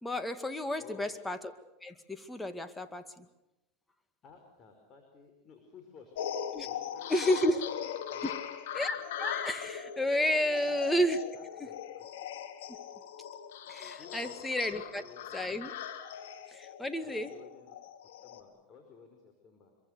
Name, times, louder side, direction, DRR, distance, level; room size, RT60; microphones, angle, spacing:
voice 1, 0.0-1.4 1.8-3.3 6.5-6.7 7.1-7.6 8.2-8.3 8.7-11.2 13.7-15.0 15.3-15.7 16.5-17.3, equal, 10° left, 9 dB, 2.1 m, -31 dB
voice 2, 0.8-1.1 2.8-2.9 4.2-6.2 6.6-8.3 10.4-10.8 11.3-12.1 14.0-14.4 14.7-15.5 17.0-17.8 18.2-19.7, left 6 dB, 35° left, 3 dB, 5.2 m, -54 dB
sound 1, 6.2-18.4, left 9 dB, 75° left, 2.6 m, -40 dB
26.0 x 23.5 x 6.8 m, 0.92 s
supercardioid pair, 115°, 0 cm